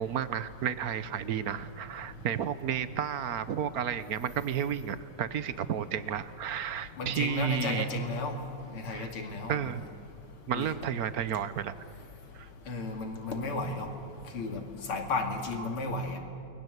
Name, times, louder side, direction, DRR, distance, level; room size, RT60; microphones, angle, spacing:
voice 1, 0.0-7.9 8.9-9.1 9.5-9.8 10.5-11.7 12.3-12.5 15.6-15.7, right 9 dB, 55° right, 14 dB, 1.1 m, -32 dB
voice 2, 7.0-8.3 8.7-9.7 10.5-10.7 12.7-13.9 14.3-14.6 14.9-16.2, left 2 dB, 85° left, 3 dB, 3.4 m, -33 dB
29.5 x 21.5 x 8.1 m, 2.9 s
omnidirectional pair, 2.4 m